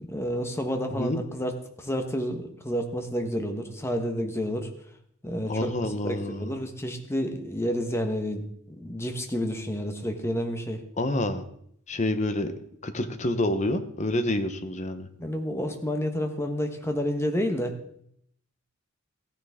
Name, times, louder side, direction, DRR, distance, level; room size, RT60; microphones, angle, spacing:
voice 1, 0.1-4.7 5.2-10.8 15.2-17.7, equal, 10° left, 5 dB, 1.1 m, -30 dB
voice 2, 0.9-1.2 5.5-6.6 11.0-11.4 11.9-12.5 12.8-15.1, left 1 dB, 35° left, 9 dB, 0.9 m, -28 dB
15.0 x 9.8 x 3.6 m, 0.69 s
head